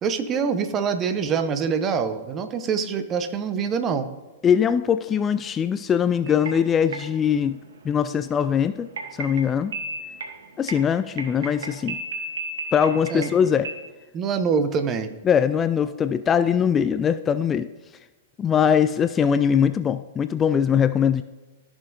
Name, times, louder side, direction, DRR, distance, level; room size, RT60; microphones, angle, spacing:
voice 1, 0.0-4.1 13.1-13.3 14.1-15.1, right 6 dB, 30° right, 9 dB, 0.8 m, -25 dB
voice 2, 4.4-7.6 7.8-8.9 9.1-9.7 10.6-12.0 12.7-13.7 15.2-17.7 18.4-21.2, left 8 dB, 20° left, 12 dB, 0.3 m, -21 dB
sound 1, 6.2-13.9, right 2 dB, 75° right, 1.3 m, -36 dB
14.5 x 6.3 x 2.6 m, 1.1 s
figure-of-eight pair, 105°, 0 cm